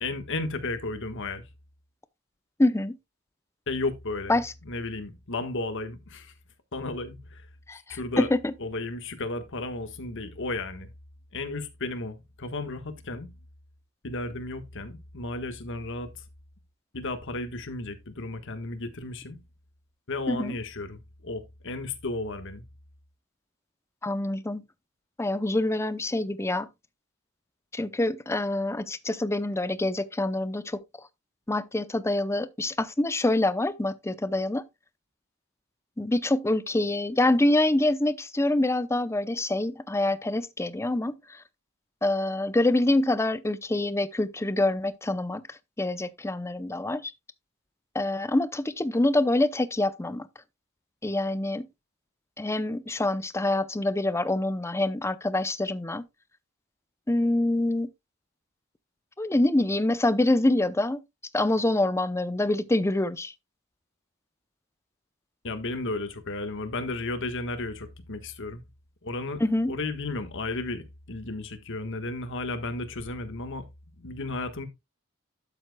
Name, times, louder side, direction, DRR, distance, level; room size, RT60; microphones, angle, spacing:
voice 1, 0.0-1.4 3.7-6.3 6.7-7.5 7.9-8.3 8.6-10.9 11.3-13.3 14.0-16.1 16.9-19.4 20.1-22.6 65.4-68.6 69.0-73.7 74.0-74.7, left 2 dB, 60° left, 1.4 m, -34 dB
voice 2, 2.6-3.0 4.3-4.5 7.7-8.5 20.3-20.6 24.0-24.6 25.2-26.7 27.7-30.8 31.5-34.7 36.0-41.4 42.0-47.1 47.9-50.3 51.0-51.7 52.4-56.0 57.1-57.9 59.2-61.0 61.3-63.3 69.4-69.7, left 1 dB, 15° left, 0.6 m, -26 dB
12.0 x 7.8 x 2.2 m
head